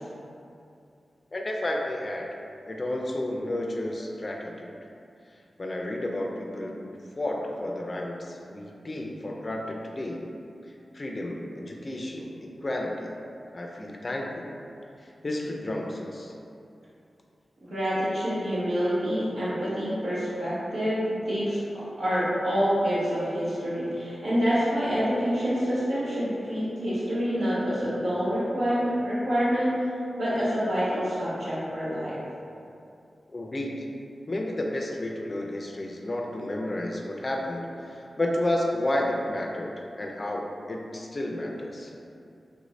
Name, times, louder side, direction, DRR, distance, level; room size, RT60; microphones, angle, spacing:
voice 1, 1.3-2.3 2.7-4.8 5.6-10.3 10.9-13.1 13.5-14.6 15.2-16.3 33.3-33.8 34.3-41.9, left 1 dB, 35° left, 0 dB, 0.4 m, -31 dB
voice 2, 17.7-21.6 22.0-29.7 30.2-32.2, equal, 90° right, -11 dB, 1.2 m, -27 dB
3.4 x 2.6 x 3.1 m, 2.6 s
wide cardioid pair, 110°, 0 cm